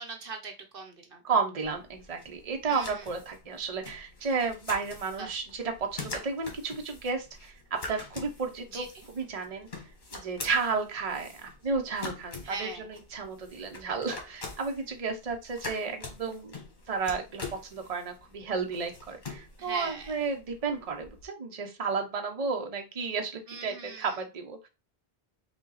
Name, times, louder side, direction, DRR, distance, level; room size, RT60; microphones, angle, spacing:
voice 1, 0.0-1.2 2.7-3.1 5.2-5.3 8.7-9.1 12.4-12.9 19.6-20.2 23.5-24.2, right 4 dB, 65° right, 5 dB, 1.0 m, -40 dB
voice 2, 1.2-7.6 7.9-9.7 10.1-16.6 16.9-17.4 17.7-24.7, right 4 dB, 40° right, 4 dB, 0.9 m, -32 dB
sound 1, 1.6-21.2, left 3 dB, 50° left, 1.4 m, -45 dB
5.4 x 2.4 x 4.0 m, 0.27 s
omnidirectional pair, 1.0 m